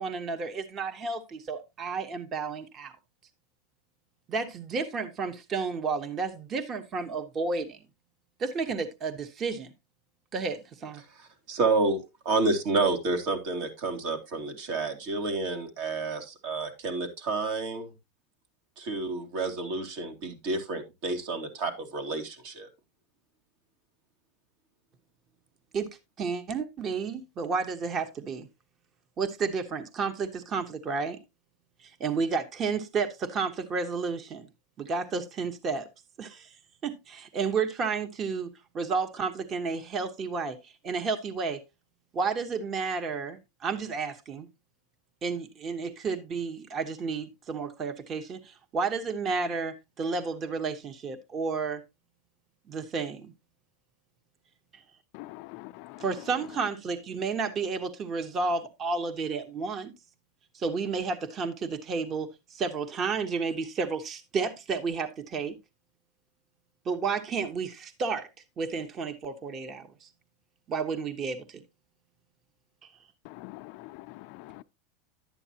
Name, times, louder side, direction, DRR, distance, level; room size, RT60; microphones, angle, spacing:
voice 1, 0.0-3.0 4.3-7.8 8.4-9.7 10.3-11.0 25.7-25.9 26.2-28.5 29.2-31.2 31.8-34.5 34.8-35.9 36.2-36.5 36.8-41.6 42.1-44.5 45.2-51.8 52.7-53.3 56.0-59.9 60.5-65.6 66.8-68.3 68.6-70.1 70.7-71.6, right 4 dB, 30° right, 1.1 m, -31 dB
voice 2, 11.1-17.9 18.8-22.7, right 3 dB, 65° right, 2.6 m, -30 dB
voice 3, 55.1-56.0 73.3-74.6, left 19 dB, 60° left, 0.4 m, -44 dB
11.5 x 8.8 x 2.9 m
supercardioid pair, 130°, 0 cm